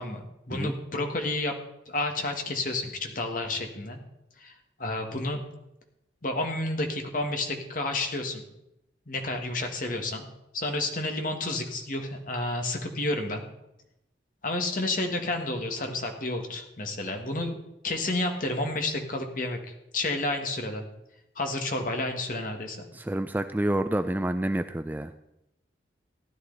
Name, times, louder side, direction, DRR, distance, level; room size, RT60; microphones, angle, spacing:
voice 1, 0.0-1.5 1.9-4.0 4.4-5.4 6.2-8.4 9.1-10.3 10.5-13.5 14.4-20.8 21.3-22.9, left 2 dB, 45° left, 4 dB, 1.7 m, -30 dB
voice 2, 22.9-25.1, right 1 dB, 10° right, 9 dB, 0.3 m, -28 dB
15.5 x 11.0 x 4.0 m, 0.86 s
head